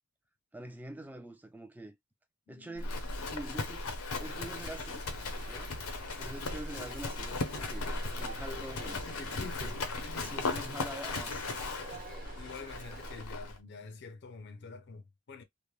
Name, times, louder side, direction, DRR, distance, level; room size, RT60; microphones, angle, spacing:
voice 1, 0.5-2.0 2.5-3.0 3.3-5.7 6.2-9.8 10.2-11.6, right 1 dB, 10° right, 0.3 m, -46 dB
voice 2, 2.5-2.9 9.1-10.4 12.4-15.4, left 4 dB, 50° left, 0.5 m, -47 dB
Livestock farm animals working animals, 2.8-13.6, left 3 dB, 90° left, 0.7 m, -37 dB
sound 1, 4.2-13.2, right 3 dB, 40° right, 1.0 m, -50 dB
3.2 x 2.1 x 2.2 m
head